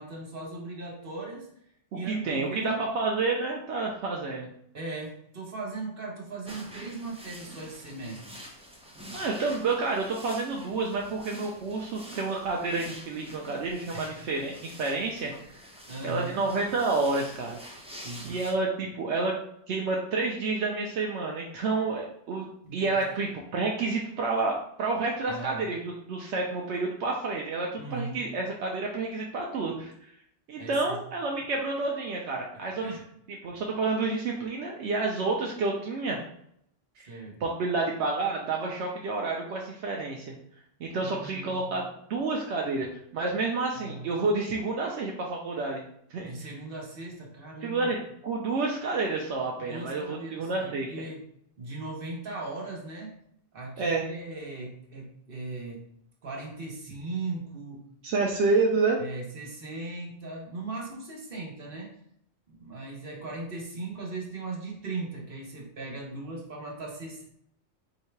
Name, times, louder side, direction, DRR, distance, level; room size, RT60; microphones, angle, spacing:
voice 1, 0.0-1.5 1.9-2.8 4.7-8.2 13.9-14.3 15.9-16.4 18.0-18.3 22.6-23.0 25.3-25.6 27.8-28.2 30.5-31.0 32.8-33.0 37.1-37.4 41.0-41.7 43.7-44.1 46.2-47.9 49.6-51.2 51.6-53.1 53.5-55.8 56.2-57.9 59.0-62.0 62.5-67.2, right 3 dB, 55° right, -2 dB, 1.3 m, -38 dB
voice 2, 2.0-4.5 9.1-15.3 16.0-17.6 18.2-19.3 19.7-22.5 22.7-29.9 30.5-32.8 33.4-36.2 37.0-37.1 37.4-40.3 40.8-42.9 43.1-45.8 46.1-46.5 47.6-50.9 53.8-54.1 58.0-59.0, right 3 dB, 80° right, 0 dB, 0.9 m, -29 dB
sound 1, 6.5-18.5, equal, 5° right, 0.5 m, -47 dB
3.9 x 2.7 x 4.4 m, 0.70 s
omnidirectional pair, 1.1 m